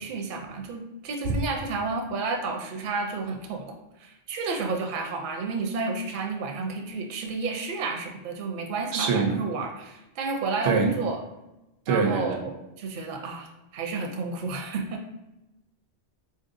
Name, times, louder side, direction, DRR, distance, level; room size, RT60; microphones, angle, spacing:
voice 1, 0.0-11.2 11.9-15.1, right 3 dB, 60° right, 3 dB, 0.6 m, -31 dB
voice 2, 8.9-9.4 10.7-10.9 11.9-12.4, right 4 dB, 85° right, 3 dB, 0.9 m, -24 dB
4.1 x 2.6 x 2.5 m, 0.97 s
omnidirectional pair, 1.2 m